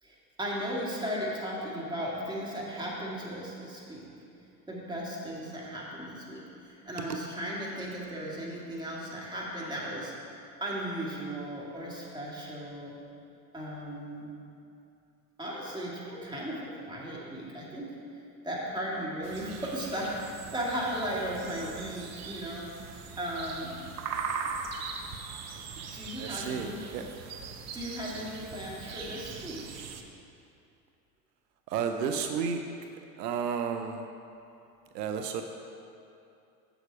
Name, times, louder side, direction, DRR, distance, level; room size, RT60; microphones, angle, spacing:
voice 1, 0.0-4.0 4.7-13.0 13.5-14.3 15.4-23.9 25.9-26.8 27.7-29.7, equal, 10° right, -5 dB, 2.1 m, -36 dB
sound 1, 19.2-30.0, right 5 dB, 35° right, 0.8 m, -40 dB
voice 2, 26.2-27.0 31.7-32.6 33.2-34.1 34.9-35.4, right 6 dB, 75° right, 5 dB, 0.7 m, -32 dB
7.9 x 7.0 x 4.7 m, 2.6 s
hypercardioid pair, 85°, 49 cm